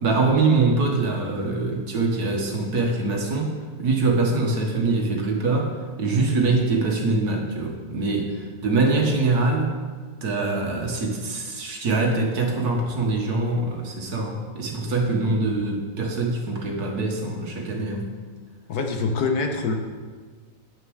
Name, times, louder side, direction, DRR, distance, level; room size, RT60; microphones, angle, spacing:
voice 1, 0.0-9.7 10.2-18.1, right 3 dB, 60° right, 1 dB, 1.8 m, -23 dB
voice 2, 18.7-19.8, left 4 dB, 65° left, 4 dB, 1.3 m, -24 dB
8.8 x 6.6 x 6.3 m, 1.5 s
omnidirectional pair, 2.0 m